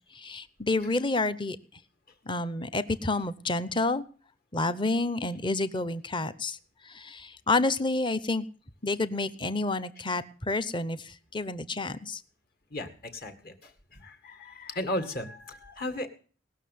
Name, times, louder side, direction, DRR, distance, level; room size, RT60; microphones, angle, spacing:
voice 1, 0.1-1.6 2.3-4.0 4.5-6.6 6.9-8.4 8.8-12.2, left 2 dB, 25° left, 14 dB, 0.8 m, -29 dB
voice 2, 12.7-16.1, left 1 dB, 55° left, 7 dB, 2.1 m, -36 dB
19.0 x 6.4 x 9.4 m, 0.42 s
head